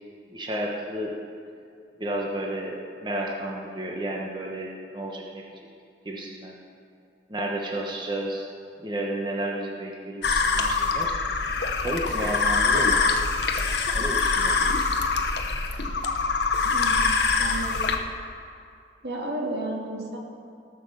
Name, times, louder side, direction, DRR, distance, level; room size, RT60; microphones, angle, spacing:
voice 1, 0.3-1.1 2.0-2.7 3.0-5.4 6.0-6.5 7.3-8.5 8.8-11.1 11.8-13.2 13.9-14.6, right 1 dB, 25° right, -2 dB, 1.1 m, -32 dB
sound 1, 10.2-18.0, left 4 dB, 70° left, 0.9 m, -24 dB
voice 2, 16.7-17.9 19.0-20.2, right 1 dB, 70° right, 0 dB, 1.8 m, -33 dB
17.5 x 5.9 x 6.6 m, 2.4 s
head